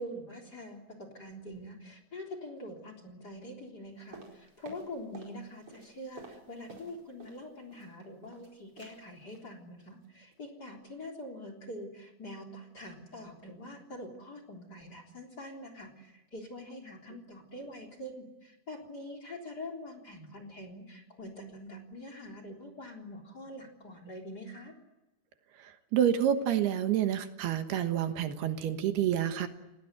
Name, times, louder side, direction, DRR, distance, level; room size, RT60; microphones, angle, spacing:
voice 1, 0.0-24.7, left 1 dB, 25° left, 6 dB, 3.8 m, -44 dB
sound 1, 4.1-5.4 5.6-7.4 7.7-8.5 8.8-9.0 9.3-9.5 9.8-10.1 10.3-10.4, right 3 dB, 35° right, 5.5 m, -51 dB
voice 2, 25.6-29.5, right 10 dB, 75° right, 8 dB, 3.3 m, -28 dB
29.5 x 18.0 x 9.4 m, 1.0 s
omnidirectional pair, 4.7 m